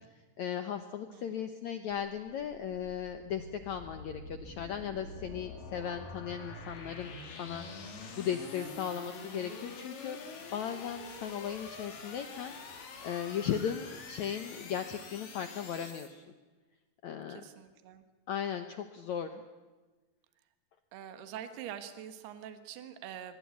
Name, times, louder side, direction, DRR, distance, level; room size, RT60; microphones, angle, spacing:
voice 1, 0.4-7.1 7.4-7.7 8.2-10.2 10.5-16.2 17.0-17.4 18.3-19.4, left 8 dB, 75° left, 9 dB, 1.7 m, -37 dB
voice 2, 1.1-1.5 8.6-8.7 17.3-18.1 20.9-23.4, right 9 dB, 80° right, 10 dB, 3.4 m, -45 dB
sound 1, 1.9-16.1, left 4 dB, 60° left, 4.2 m, -46 dB
25.5 x 21.0 x 8.6 m, 1.2 s
omnidirectional pair, 4.7 m